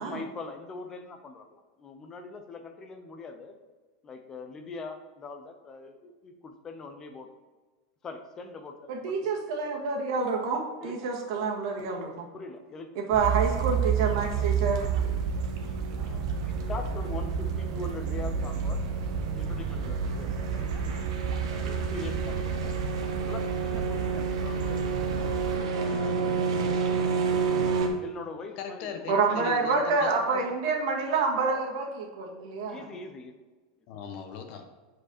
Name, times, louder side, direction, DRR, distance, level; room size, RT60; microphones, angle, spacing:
voice 1, 0.0-3.6 4.0-7.3 8.0-9.3 10.8-11.1 12.3-13.0 15.9-18.8 19.4-20.8 21.5-22.7 23.3-24.9 25.7-26.4 28.0-29.3 32.7-33.3, left 3 dB, 15° left, 6 dB, 0.6 m, -42 dB
voice 2, 8.9-12.3 13.0-14.8 20.6-20.7 29.1-32.9, right 4 dB, 60° right, -1 dB, 1.7 m, -28 dB
sound 1, 13.1-25.6, right 7 dB, 30° right, 0.6 m, -31 dB
sound 2, 13.2-27.9, right 4 dB, 80° right, 1.3 m, -32 dB
voice 3, 28.6-30.4 33.9-34.6, left 7 dB, 40° left, 5 dB, 0.9 m, -40 dB
7.7 x 4.8 x 4.3 m, 1.3 s
supercardioid pair, 175°, 3 cm